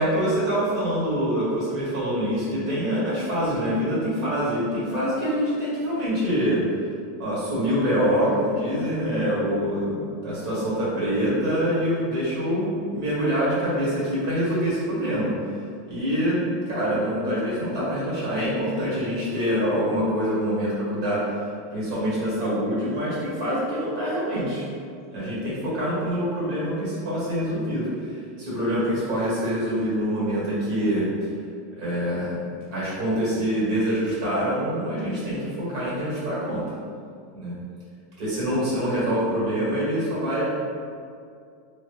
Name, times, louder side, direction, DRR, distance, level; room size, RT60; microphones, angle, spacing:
voice 1, 0.0-6.6 7.2-15.3 15.9-21.4 21.7-24.7 25.1-31.0 31.8-32.4 32.7-36.6 37.3-37.5 38.2-40.5, equal, 55° right, -8 dB, 1.4 m, -25 dB
3.1 x 2.1 x 3.1 m, 2.2 s
supercardioid pair, 150°, 0 cm